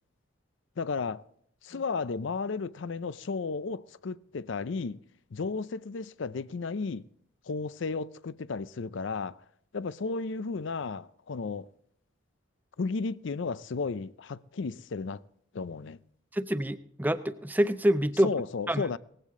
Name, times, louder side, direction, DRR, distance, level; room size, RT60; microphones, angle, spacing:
voice 1, 0.8-1.2 1.6-5.0 5.3-7.0 7.5-9.4 9.7-11.7 12.8-15.2 15.5-16.0 18.2-19.0, left 4 dB, 65° left, 0.5 m, -33 dB
voice 2, 16.3-18.3 18.7-18.8, equal, 10° right, 0.5 m, -26 dB
19.0 x 15.5 x 3.7 m
head